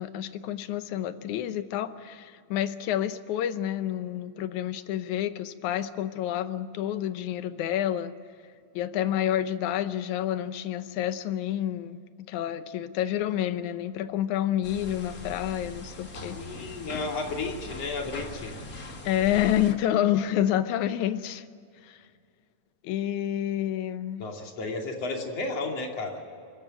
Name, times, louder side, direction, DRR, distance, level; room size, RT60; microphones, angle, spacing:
voice 1, 0.0-8.1 8.8-12.0 12.3-16.4 19.1-21.5 21.8-22.0 22.8-24.2, left 11 dB, 85° left, 12 dB, 2.3 m, -29 dB
sound 1, 14.6-19.7, left 1 dB, 35° left, 2.1 m, -41 dB
voice 2, 16.3-18.5 24.2-26.2, left 3 dB, 60° left, 1 dB, 3.8 m, -33 dB
27.0 x 14.0 x 9.1 m, 2.3 s
omnidirectional pair, 3.3 m